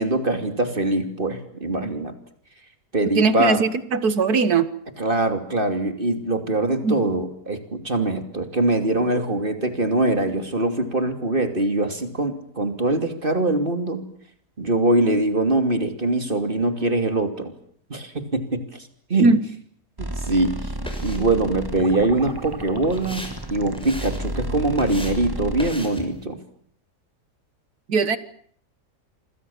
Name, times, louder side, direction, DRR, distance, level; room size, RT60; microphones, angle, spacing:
voice 1, 0.0-2.1 2.9-3.6 5.0-14.1 14.6-17.5 17.9-19.3 20.0-20.7 21.0-26.4, right 2 dB, 30° right, 7 dB, 3.0 m, -23 dB
voice 2, 3.2-4.7 6.8-7.0 19.2-19.4 27.9-28.2, right 4 dB, 70° right, 13 dB, 2.0 m, -19 dB
sound 1, 20.0-25.7, right 1 dB, 15° right, 1.7 m, -32 dB
sound 2, 20.2-26.2, equal, 5° left, 6.2 m, -40 dB
27.0 x 26.0 x 7.2 m, 0.62 s
omnidirectional pair, 1.7 m